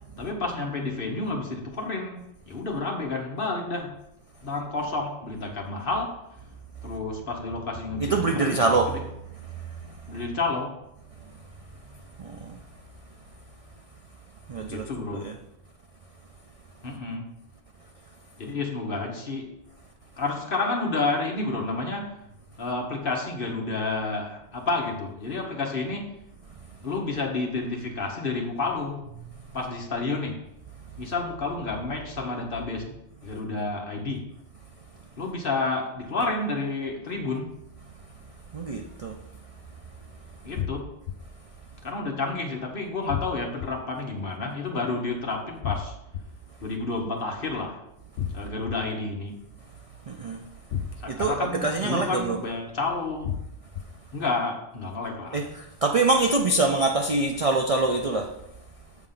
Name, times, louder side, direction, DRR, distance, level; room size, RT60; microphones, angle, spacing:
voice 1, 0.2-3.9 4.4-6.2 6.8-9.0 10.1-10.8 14.7-15.3 16.8-17.3 18.4-19.6 20.2-22.2 22.6-26.1 26.8-29.0 29.5-30.4 31.0-34.3 35.2-37.5 40.4-40.9 41.8-45.9 46.6-47.8 48.3-49.4 51.0-53.3 54.1-55.4, left 3 dB, 50° left, 1 dB, 1.2 m, -30 dB
voice 2, 8.0-9.0 9.5-10.0 12.2-12.6 14.5-14.9 15.1-15.3 38.5-39.1 50.1-50.4 51.1-52.4 55.3-58.3, right 3 dB, 50° right, 3 dB, 0.4 m, -25 dB
sound 1, 40.6-41.1 43.1-43.7 45.6-46.2 48.2-48.7 50.7-51.3 53.2-53.8, left 9 dB, 65° left, 0.8 m, -31 dB
7.8 x 3.6 x 5.6 m, 0.85 s
omnidirectional pair, 1.3 m